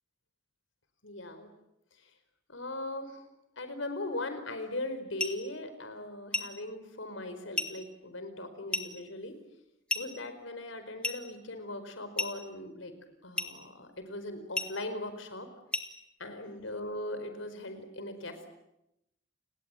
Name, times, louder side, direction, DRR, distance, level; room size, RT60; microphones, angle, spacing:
voice 1, 1.0-1.5 2.0-2.1 2.5-3.2 3.6-9.4 9.9-12.9 13.2-15.5 16.2-18.5, left 2 dB, 75° left, 9 dB, 4.7 m, -39 dB
sound 1, 5.2-5.4 6.3-6.6 7.6-7.8 8.7-9.0 9.9-10.2 11.0-11.3 12.2-12.4 13.4-13.6 14.5-14.8 15.7-16.0, left 2 dB, 5° left, 2.0 m, -33 dB
29.5 x 20.5 x 9.1 m, 0.86 s
head